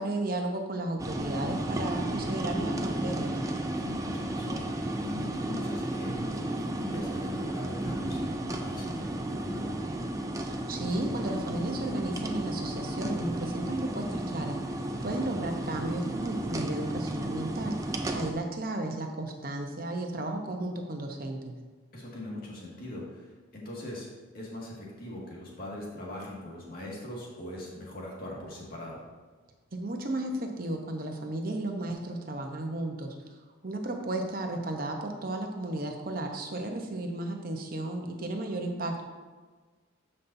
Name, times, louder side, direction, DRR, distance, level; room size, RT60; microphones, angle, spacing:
voice 1, 0.0-3.3 10.7-14.6 15.0-17.8 18.1-21.5 29.7-33.1 33.6-39.0, right 1 dB, 45° right, 3 dB, 0.9 m, -34 dB
sound 1, 1.0-18.3, right 1 dB, 15° right, 0.5 m, -33 dB
voice 2, 3.8-9.6 18.0-18.3 21.9-23.2 23.5-24.1 24.3-29.0, left 1 dB, 50° left, -4 dB, 2.0 m, -41 dB
12.5 x 5.5 x 2.7 m, 1.4 s
head